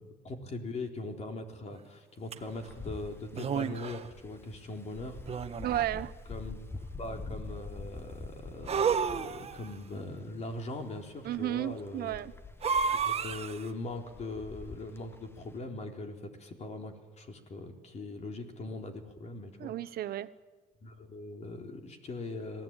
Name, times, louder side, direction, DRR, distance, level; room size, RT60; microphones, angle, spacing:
voice 1, 0.2-5.2 6.3-6.7 7.0-12.2 12.9-19.7 20.8-22.6, left 2 dB, 40° left, 4 dB, 3.9 m, -41 dB
sound 1, 2.3-2.4 3.3-4.1 5.3-6.0 8.7-9.7 12.6-13.7, right 6 dB, 35° right, 1.4 m, -31 dB
Wind, 2.5-15.6, left 3 dB, 15° left, 1.4 m, -46 dB
voice 2, 5.6-6.1 11.2-12.3 19.6-20.3, right 13 dB, 65° right, 14 dB, 1.1 m, -33 dB
26.5 x 18.0 x 9.0 m, 1.3 s
cardioid pair, 110°, 17 cm